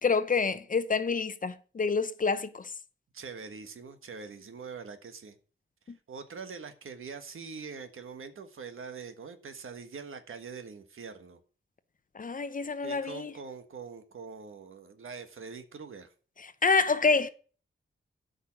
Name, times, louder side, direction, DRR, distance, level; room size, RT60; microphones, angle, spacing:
voice 1, 0.0-2.7 5.9-6.0 12.1-13.3 16.4-17.3, left 4 dB, 40° left, 0.7 m, -27 dB
voice 2, 3.1-5.4 6.1-11.4 12.8-16.1, right 5 dB, 75° right, 1.5 m, -43 dB
12.5 x 5.6 x 6.0 m
wide cardioid pair, 155°, 21 cm